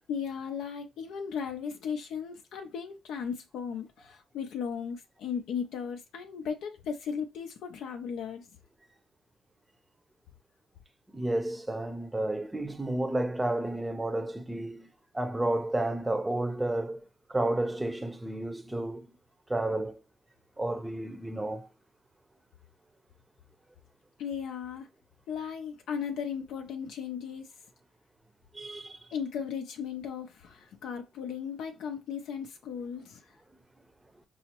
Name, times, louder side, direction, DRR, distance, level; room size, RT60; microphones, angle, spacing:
voice 1, 0.1-8.5 24.2-24.9 25.3-27.5 29.1-33.3, left 7 dB, 80° left, 0.5 m, -36 dB
voice 2, 11.1-14.9 15.1-19.1 19.5-20.0 20.6-21.7 28.5-29.1 33.5-33.6, right 1 dB, 15° right, 0.6 m, -31 dB
5.4 x 2.0 x 2.9 m
cardioid pair, 90°, 0 cm